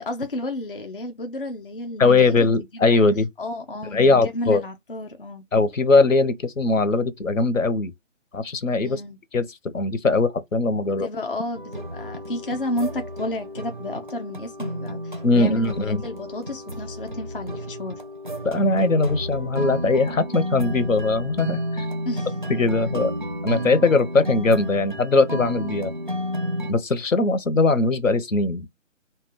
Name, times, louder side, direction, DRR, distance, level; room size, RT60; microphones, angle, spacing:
voice 1, 0.0-2.4 2.7-3.1 3.4-5.4 8.8-9.2 10.9-18.0 22.1-22.3, left 1 dB, 45° left, 0.4 m, -32 dB
voice 2, 2.0-3.3 3.9-4.6 5.5-7.9 8.3-9.0 9.3-11.1 15.2-16.0 18.4-21.9 22.5-23.1 23.4-25.9 26.7-28.7, left 3 dB, 80° left, 0.8 m, -20 dB
sound 1, 11.6-26.7, equal, 40° right, 0.4 m, -31 dB
2.3 x 2.2 x 3.5 m
figure-of-eight pair, 155°, 39 cm